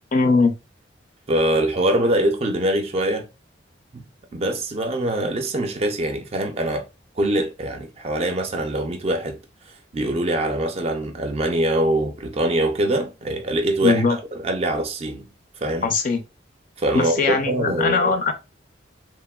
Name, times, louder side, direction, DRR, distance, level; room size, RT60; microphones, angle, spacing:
voice 1, 0.1-0.6 13.8-14.2 15.8-16.2 16.9-18.3, left 4 dB, 45° left, 0.4 m, -20 dB
voice 2, 1.3-3.3 3.9-4.1 4.3-6.9 7.2-9.4 9.9-15.3 15.6-15.9 16.8-18.1, right 1 dB, 35° right, 0.4 m, -23 dB
3.0 x 2.0 x 2.2 m
head